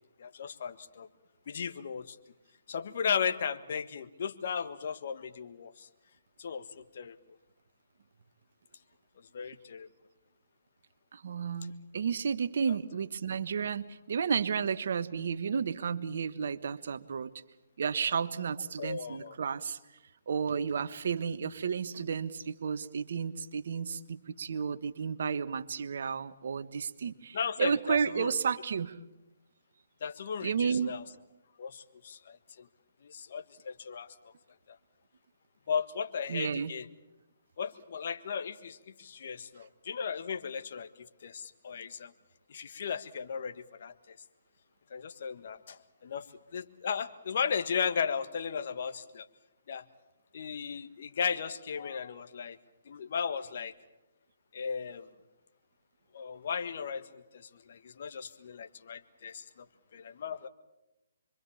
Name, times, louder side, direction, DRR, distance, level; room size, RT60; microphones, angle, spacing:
voice 1, 0.2-1.1 1.5-2.2 2.7-5.9 6.4-7.2 9.3-9.9 18.8-19.3 27.3-28.3 30.0-31.0 31.6-32.7 33.0-34.3 34.7-34.8 35.7-36.9 37.6-42.1 42.5-44.2 44.9-46.3 46.5-49.3 49.7-49.8 50.3-52.6 52.8-53.7 54.5-55.1 56.1-59.7 59.9-60.5, left 6 dB, 55° left, 10 dB, 1.6 m, -36 dB
voice 2, 11.1-17.3 17.8-19.8 20.3-29.0 30.4-31.0 36.3-36.7, right 6 dB, 60° right, 13 dB, 1.3 m, -32 dB
25.5 x 24.0 x 7.3 m, 0.98 s
hypercardioid pair, 140°, 0 cm